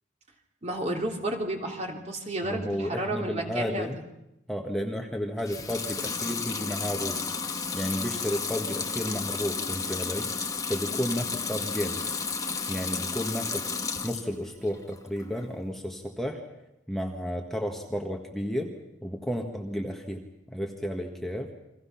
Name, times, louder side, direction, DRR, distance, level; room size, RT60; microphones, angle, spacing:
voice 1, 0.6-3.9, right 1 dB, 35° right, 1 dB, 3.3 m, -32 dB
voice 2, 2.4-4.0 4.5-7.2 7.4-12.0 12.7-13.7 14.0-16.4 16.9-18.7 19.0-21.5, equal, ahead, 1 dB, 1.6 m, -32 dB
Water tap faucet / Sink (filling or washing) / Liquid, 5.4-14.3 14.7-15.5, left 5 dB, 20° left, 1.3 m, -32 dB
30.0 x 23.5 x 5.9 m, 0.90 s
head